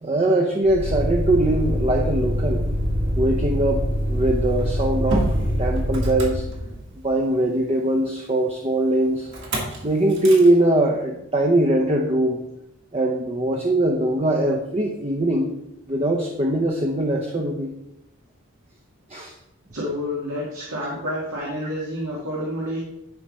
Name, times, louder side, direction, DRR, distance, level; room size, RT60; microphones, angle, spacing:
voice 1, 0.0-2.6 3.2-5.3 5.6-6.4 7.0-9.3 9.8-12.4 12.9-15.5 15.9-17.7 19.1-19.3 21.6-21.7, right 1 dB, 30° right, 2 dB, 0.7 m, -21 dB
Motor vehicle (road), 0.6-7.1 9.3-9.8 10.1-10.5, equal, 55° right, 1.9 m, -24 dB
voice 2, 19.7-22.8, left 1 dB, 85° right, -5 dB, 1.9 m, -29 dB
10.5 x 5.0 x 4.2 m, 0.85 s
head